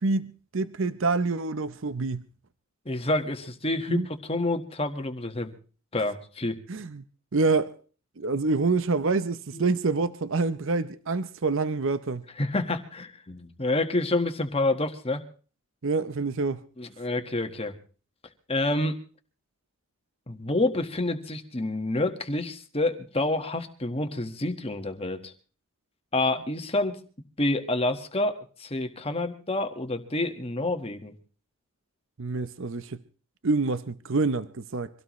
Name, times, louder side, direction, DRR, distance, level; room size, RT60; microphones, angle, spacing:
voice 1, 0.0-2.3 3.9-4.1 6.7-7.0 7.3-7.7 8.2-12.2 15.8-16.6 32.2-33.0 33.4-34.9, right 3 dB, 60° right, 0.7 m, -26 dB
voice 2, 2.8-5.5 5.9-6.6 9.5-9.6 12.4-15.2 16.8-17.7 18.5-19.0 20.3-25.3 26.1-27.0 27.4-31.1, left 2 dB, 25° left, 1.5 m, -28 dB
25.0 x 17.0 x 3.1 m
head